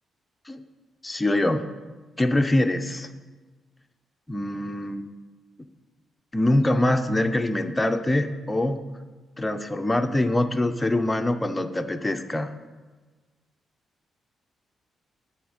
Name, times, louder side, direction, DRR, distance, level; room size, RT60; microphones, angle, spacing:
voice 1, 1.0-1.6 2.2-3.1 4.3-5.1 6.3-8.8 9.4-12.5, left 1 dB, 15° left, 7 dB, 0.7 m, -24 dB
10.5 x 5.0 x 8.0 m, 1.3 s
cardioid pair, 100°, 0 cm